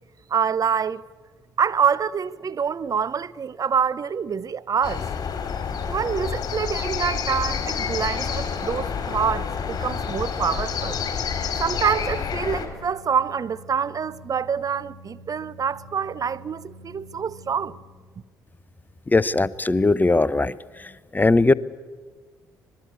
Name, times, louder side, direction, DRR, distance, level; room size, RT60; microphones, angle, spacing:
voice 1, 0.3-1.0 1.6-5.0 5.9-11.0 11.6-17.8, right 7 dB, 40° right, 0.8 m, -26 dB
sound 1, 4.8-12.7, left 6 dB, 45° left, 4.5 m, -28 dB
Organ, 7.4-18.2, right 2 dB, 25° right, 5.6 m, -47 dB
voice 2, 19.1-20.5 20.8-21.5, left 3 dB, 20° left, 0.8 m, -19 dB
25.0 x 21.0 x 8.4 m
hypercardioid pair, 50°, 9 cm